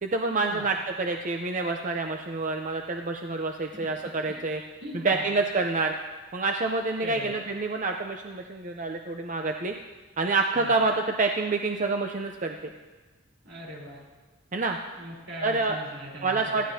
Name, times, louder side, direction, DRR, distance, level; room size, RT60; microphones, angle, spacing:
voice 1, 0.0-4.6 5.0-5.9 6.3-9.7 10.2-12.7 14.5-14.8 15.4-15.8 16.2-16.7, right 3 dB, 40° right, 3 dB, 0.6 m, -27 dB
voice 2, 3.7-4.4 4.8-5.2 7.0-7.3 10.6-10.7 13.4-14.0 14.9-16.7, equal, 75° right, -3 dB, 4.0 m, -40 dB
18.5 x 14.5 x 2.8 m, 1.3 s
head